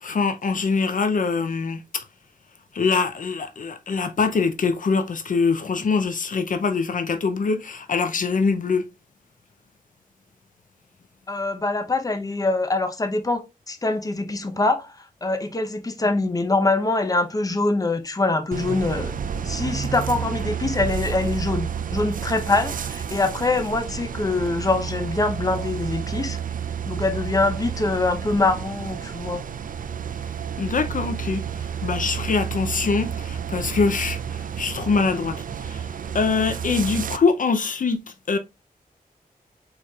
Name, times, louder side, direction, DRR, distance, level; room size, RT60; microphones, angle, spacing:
voice 1, 0.0-2.0 2.7-8.9 30.6-35.9 36.1-38.0 38.3-38.4, left 4 dB, 60° left, 0.6 m, -24 dB
voice 2, 11.3-19.1 19.4-26.4 26.9-29.4, left 2 dB, 25° left, 0.7 m, -24 dB
sound 1, 18.5-37.2, right 8 dB, 65° right, 0.5 m, -30 dB
4.9 x 4.2 x 2.4 m
wide cardioid pair, 90°, 15 cm